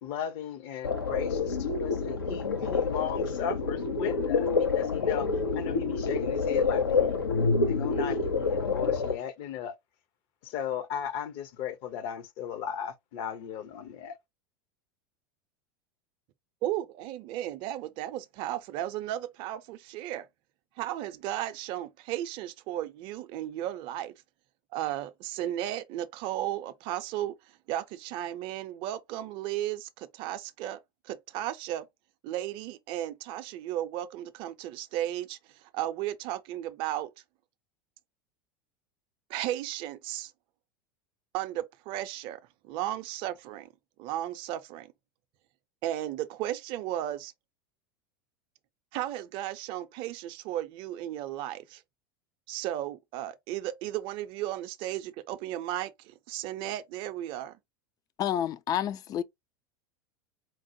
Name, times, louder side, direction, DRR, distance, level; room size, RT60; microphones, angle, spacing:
voice 1, 0.0-5.3 5.5-7.1 7.6-9.7 10.4-14.2, left 8 dB, 50° left, 0.8 m, -36 dB
sound 1, 0.8-9.1, left 4 dB, 85° left, 0.7 m, -27 dB
voice 2, 16.6-20.3 20.8-24.1 24.7-31.9 32.2-37.1 39.3-40.3 41.3-43.7 44.0-44.9 45.8-47.3 48.9-51.8 52.5-57.6, right 13 dB, 45° right, 0.6 m, -35 dB
voice 3, 58.2-59.2, left 10 dB, 35° left, 0.4 m, -29 dB
4.5 x 2.1 x 2.9 m
figure-of-eight pair, 80°, 12 cm